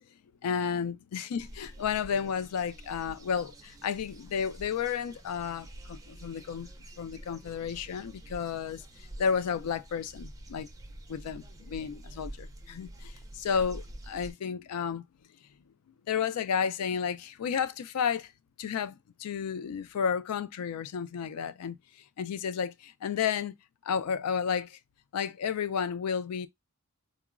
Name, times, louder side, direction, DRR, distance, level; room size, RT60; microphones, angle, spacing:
voice 1, 0.4-6.7 7.0-10.7 11.1-15.0 16.1-18.3 18.6-21.8 22.2-23.5 23.8-24.8 25.1-26.5, left 7 dB, 85° left, 0.4 m, -32 dB
sound 1, 1.4-14.3, right 1 dB, 15° right, 0.3 m, -47 dB
3.7 x 2.0 x 2.3 m
head